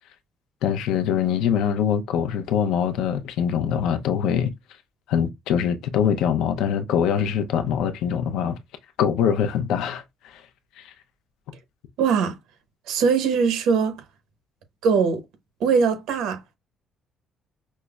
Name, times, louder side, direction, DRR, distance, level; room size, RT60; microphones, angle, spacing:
voice 1, 0.6-4.5 5.1-8.6 9.0-10.4 10.8-10.9, left 8 dB, 85° left, 0.6 m, -23 dB
voice 2, 12.0-12.4 12.9-14.0 14.8-15.2 15.6-16.5, right 5 dB, 85° right, 0.9 m, -21 dB
5.4 x 2.0 x 2.3 m
cardioid pair, 175°, 0 cm